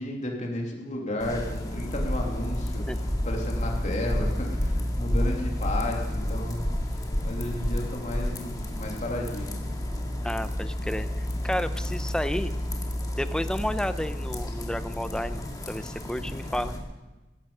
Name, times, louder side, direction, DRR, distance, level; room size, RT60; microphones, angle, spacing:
voice 1, 0.0-2.8 3.2-6.6 7.2-9.6, left 1 dB, 40° left, 0 dB, 2.9 m, -33 dB
sound 1, 1.2-16.8, left 1 dB, 20° left, 1.9 m, -30 dB
voice 2, 10.2-12.5 13.1-16.7, left 1 dB, 5° left, 12 dB, 0.6 m, -31 dB
16.5 x 14.0 x 5.6 m, 1.1 s
head